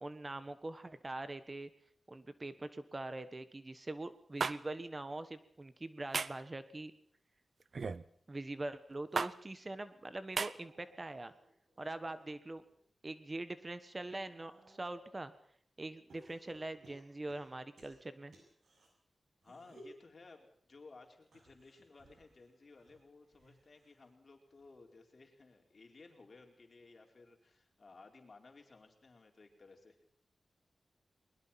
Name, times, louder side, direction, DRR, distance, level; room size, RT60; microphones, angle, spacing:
voice 1, 0.0-1.7 2.1-6.9 8.3-11.3 11.8-12.6 13.0-15.3 15.8-18.3, right 2 dB, 30° right, 12 dB, 1.3 m, -43 dB
sound 1, 4.4-4.6 6.1-6.4 7.7-8.0 9.2-9.3 10.4-10.5, right 4 dB, 65° right, 0.8 m, -34 dB
sound 2, 10.4-12.8 13.3-15.2 16.1-18.9 19.4-20.0 21.2-24.1 24.4-24.9 26.0-26.1, right 1 dB, 80° right, 7.9 m, -62 dB
voice 2, 19.4-30.0, left 3 dB, 50° left, 2 dB, 4.6 m, -58 dB
21.0 x 21.0 x 5.9 m, 0.64 s
wide cardioid pair, 80°, 0 cm